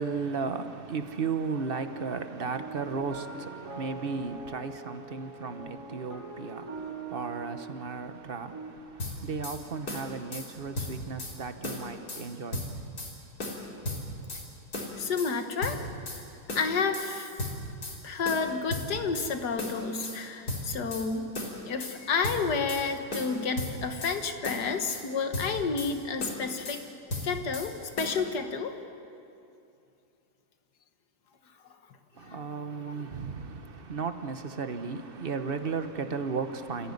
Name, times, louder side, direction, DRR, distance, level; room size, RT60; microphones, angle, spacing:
voice 1, 0.0-12.9 32.2-36.9, right 5 dB, 40° right, 1.2 m, -35 dB
sound 1, 1.5-8.7, right 4 dB, 75° right, 3.7 m, -43 dB
sound 2, 9.0-9.6 9.9-10.5 10.7-11.3 11.6-12.2 12.5-13.1 13.4-14.4 14.7-15.3 15.6-16.2 16.5-17.1 17.4-18.0 18.2-19.3 19.6-20.2 20.5-21.1 21.3-22.0 22.2-22.8 23.1-24.2 24.4-25.0 25.3-25.9 26.2-26.8 27.1-27.7 28.0-28.2, left 2 dB, 65° left, 4.1 m, -35 dB
voice 2, 15.0-15.9 16.6-17.3 18.0-21.3 21.7-26.8 27.2-28.7 32.2-32.4 32.8-33.0, left 5 dB, 85° left, 2.1 m, -30 dB
27.5 x 15.0 x 9.9 m
omnidirectional pair, 1.7 m